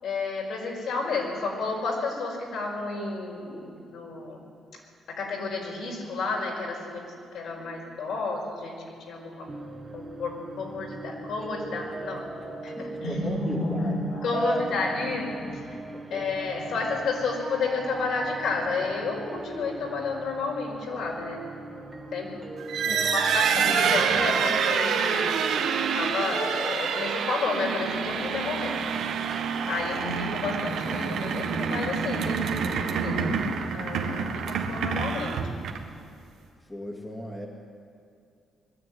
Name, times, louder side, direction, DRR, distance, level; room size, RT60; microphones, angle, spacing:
voice 1, 0.0-4.4 5.2-7.0 7.3-9.5 9.9-12.2 12.6-15.7 16.1-21.5 22.1-22.3 22.9-25.7 25.9-28.8 29.6-33.3 33.7-35.4, left 3 dB, 70° left, -1 dB, 5.1 m, -31 dB
sound 1, 9.5-24.5, right 2 dB, 25° right, 1.8 m, -39 dB
voice 2, 12.8-13.9 14.3-14.8 15.9-16.3 22.8-23.3 36.7-37.5, equal, 10° left, 0 dB, 2.1 m, -34 dB
sound 2, 22.6-36.0, right 6 dB, 80° right, 1.6 m, -27 dB
21.0 x 13.5 x 9.5 m, 2.4 s
cardioid pair, 155°, 0 cm